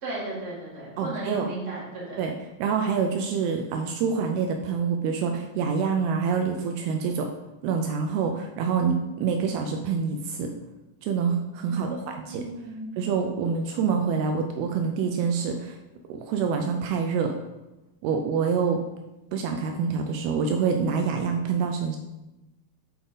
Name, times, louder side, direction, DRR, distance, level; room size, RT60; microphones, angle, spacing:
voice 1, 0.0-2.2 11.7-13.0, right 2 dB, 30° right, -8 dB, 2.4 m, -35 dB
voice 2, 1.0-1.5 2.2-7.3 7.6-10.5 11.0-12.5 13.0-15.8 16.1-17.4 18.0-18.8 19.3-22.0, right 6 dB, 85° right, 4 dB, 2.4 m, -26 dB
7.8 x 4.0 x 3.9 m, 0.98 s
omnidirectional pair, 4.5 m